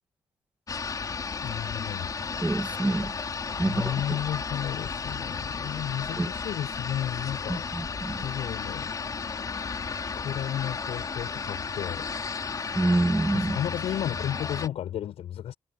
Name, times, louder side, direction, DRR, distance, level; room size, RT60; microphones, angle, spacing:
sound 1, 0.7-14.7, left 5 dB, 35° left, 5.0 m, -33 dB
voice 1, 1.4-2.2 3.5-7.7 8.1-8.9 9.9-12.1 13.3-15.5, left 11 dB, 75° left, 7.9 m, -33 dB
voice 2, 2.4-3.1 3.6-3.9 6.2-6.3 7.5-8.2 12.8-13.6, right 2 dB, 15° right, 2.2 m, -26 dB
cardioid pair, 120°, 10 cm